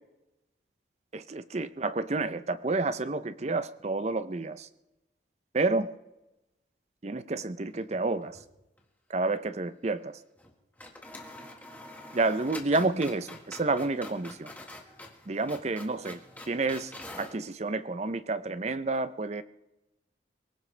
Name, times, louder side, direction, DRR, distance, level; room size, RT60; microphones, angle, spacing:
voice 1, 1.1-4.7 5.5-5.9 7.0-8.4 9.1-10.2 12.1-14.5 15.3-16.2 16.5-16.9 17.2-19.4, right 3 dB, 35° right, 13 dB, 0.6 m, -29 dB
sound 1, 7.7-8.5 8.8-8.9 10.4-10.5 10.8-17.4, left 2 dB, 10° left, 1.5 m, -46 dB
24.0 x 17.0 x 3.3 m, 0.97 s
head